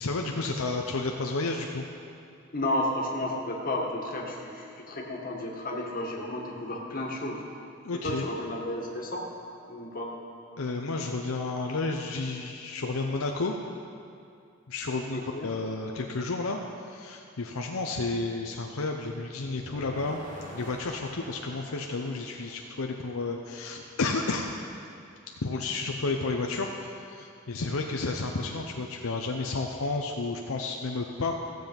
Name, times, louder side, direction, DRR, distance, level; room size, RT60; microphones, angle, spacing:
voice 1, 0.0-1.8 7.8-8.3 10.6-13.6 14.7-20.2 20.5-24.5 25.4-31.3, left 3 dB, 75° left, 2 dB, 0.7 m, -31 dB
voice 2, 2.5-7.4 8.0-9.2 9.7-10.1 15.1-15.5, left 1 dB, 40° left, -1 dB, 1.7 m, -32 dB
sound 1, 19.4-23.5, equal, 40° right, 2.1 m, -47 dB
15.5 x 7.7 x 5.2 m, 2.5 s
head